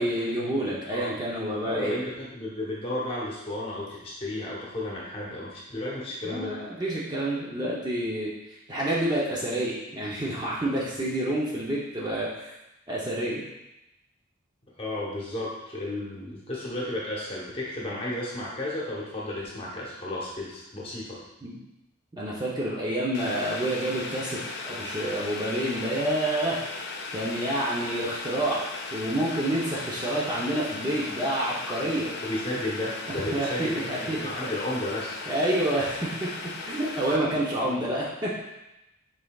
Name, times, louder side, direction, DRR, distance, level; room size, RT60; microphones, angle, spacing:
voice 1, 0.0-2.0 6.2-8.3 8.7-12.5 12.9-13.4 21.4-21.6 22.2-24.4 24.7-26.6 27.1-28.6 28.9-32.1 33.1-34.3 35.3-36.3 36.6-38.3, right 1 dB, 20° right, -6 dB, 0.7 m, -28 dB
voice 2, 1.5-6.5 10.8-11.0 14.8-21.2 32.1-35.2, left 1 dB, 30° left, -5 dB, 1.0 m, -33 dB
Boiling, 23.1-37.2, left 3 dB, 55° left, 0.5 m, -37 dB
5.5 x 3.9 x 2.3 m, 0.93 s
head